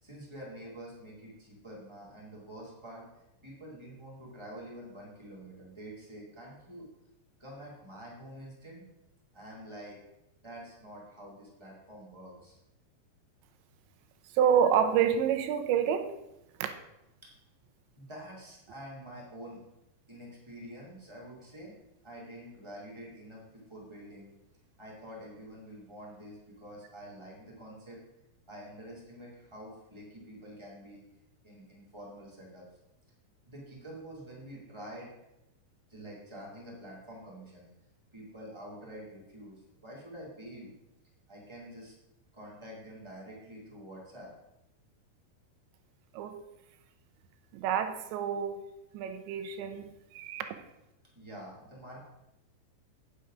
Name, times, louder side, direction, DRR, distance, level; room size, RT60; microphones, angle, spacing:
voice 1, 0.0-3.1 3.4-6.8 7.4-8.8 9.3-10.0 10.4-12.6 17.2-17.3 17.9-19.6 20.1-21.7 22.0-24.3 24.8-28.0 28.5-31.0 31.4-32.6 33.4-35.1 35.9-37.7 38.1-40.7 41.3-41.9 42.3-44.3 51.1-52.0, right 1 dB, 15° right, -5 dB, 0.9 m, -47 dB
voice 2, 14.3-16.1 16.6-16.7 46.1-46.4 47.5-48.6 48.9-50.6, right 8 dB, 85° right, 8 dB, 3.1 m, -28 dB
9.1 x 6.8 x 5.0 m, 0.90 s
omnidirectional pair, 5.0 m